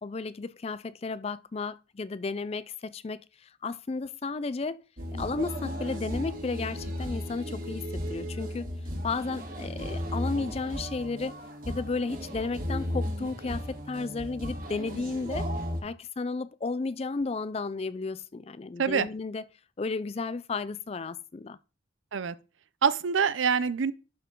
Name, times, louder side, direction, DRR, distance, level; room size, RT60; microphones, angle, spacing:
voice 1, 0.0-3.2 3.6-4.8 5.2-7.8 8.1-8.7 9.0-11.4 11.7-15.5 15.8-19.4 19.8-21.6, left 4 dB, 30° left, 0.4 m, -33 dB
sound 1, 5.0-15.8, equal, 45° right, 1.7 m, -35 dB
voice 2, 22.8-23.9, right 6 dB, 85° right, 0.5 m, -25 dB
11.5 x 4.6 x 3.8 m
head